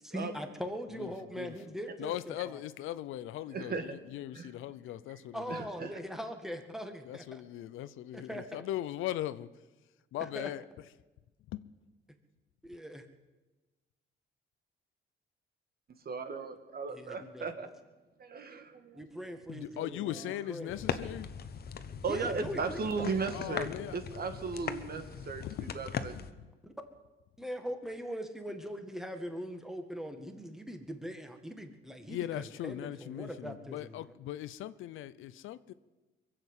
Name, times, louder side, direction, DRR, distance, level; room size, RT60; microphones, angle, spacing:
voice 1, 0.0-2.1 2.5-2.6 5.3-7.4 8.1-8.6 10.4-10.5 12.6-13.0 16.9-17.7 18.9-21.0 22.0-23.1 26.6-26.7 27.4-32.2 32.6-34.0, equal, ahead, 1.9 m, -41 dB
voice 2, 1.0-1.5 2.0-5.7 7.0-9.7 10.1-10.6 11.5-11.7 19.5-21.3 23.3-24.0 25.4-25.7 26.2-26.5 32.1-35.7, left 13 dB, 85° left, 0.6 m, -39 dB
voice 3, 3.5-4.0 4.3-4.5 5.5-6.0 16.0-17.7 18.2-19.0 22.0-25.5 25.7-26.2, right 4 dB, 50° right, 1.7 m, -36 dB
sound 1, 20.7-26.3, left 7 dB, 50° left, 1.0 m, -40 dB
22.5 x 7.8 x 8.1 m
cardioid pair, 90°, 20 cm